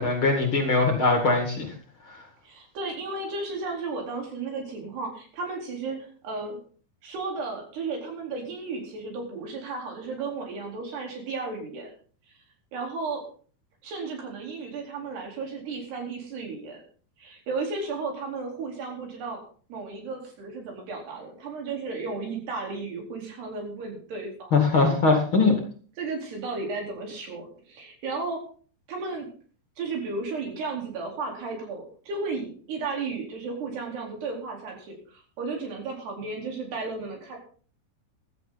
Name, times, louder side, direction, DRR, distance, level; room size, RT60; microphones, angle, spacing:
voice 1, 0.0-1.7 24.5-25.5, left 3 dB, 40° left, 3 dB, 2.4 m, -21 dB
voice 2, 2.4-6.6 7.0-11.9 12.7-13.2 13.8-16.8 17.2-19.4 19.7-24.8 26.0-28.4 28.9-29.3 29.8-37.4, right 3 dB, 85° right, 1 dB, 6.2 m, -34 dB
15.5 x 13.5 x 4.1 m, 0.43 s
omnidirectional pair, 4.6 m